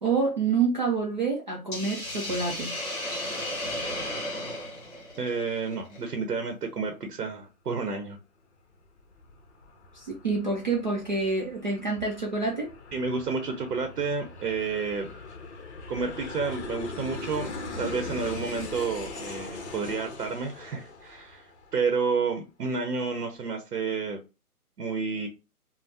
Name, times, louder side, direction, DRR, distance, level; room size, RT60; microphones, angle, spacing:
voice 1, 0.0-2.7 9.9-12.7, right 4 dB, 35° right, 0.4 m, -27 dB
Hiss, 1.7-6.0, left 1 dB, 25° left, 1.6 m, -34 dB
voice 2, 5.2-8.2 12.9-15.1 15.9-17.5 17.8-24.2 24.8-25.3, right 4 dB, 85° right, 0.7 m, -30 dB
Aircraft, 8.8-22.0, left 3 dB, 50° left, 0.7 m, -41 dB
3.2 x 2.1 x 2.7 m
hypercardioid pair, 145°, 46 cm